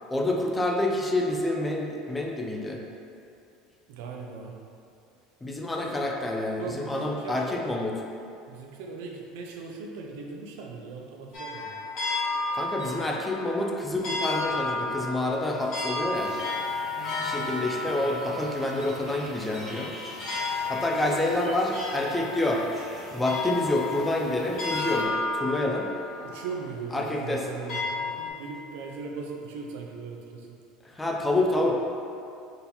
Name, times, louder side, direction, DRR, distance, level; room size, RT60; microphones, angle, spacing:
voice 1, 0.1-2.8 5.4-7.9 12.5-16.3 17.2-19.9 20.7-22.6 23.1-25.9 26.9-27.5 30.8-31.7, left 1 dB, 10° left, 0 dB, 0.3 m, -28 dB
voice 2, 3.9-4.6 5.8-6.0 6.6-7.4 8.5-11.7 17.0-18.0 20.9-21.4 26.2-30.5, right 4 dB, 75° right, 1 dB, 0.5 m, -39 dB
sound 1, 11.3-28.3, left 3 dB, 45° left, 1.3 m, -33 dB
sound 2, 16.1-25.0, right 1 dB, 10° right, 0.7 m, -45 dB
3.9 x 2.8 x 4.1 m, 2.5 s
cardioid pair, 155°, 0 cm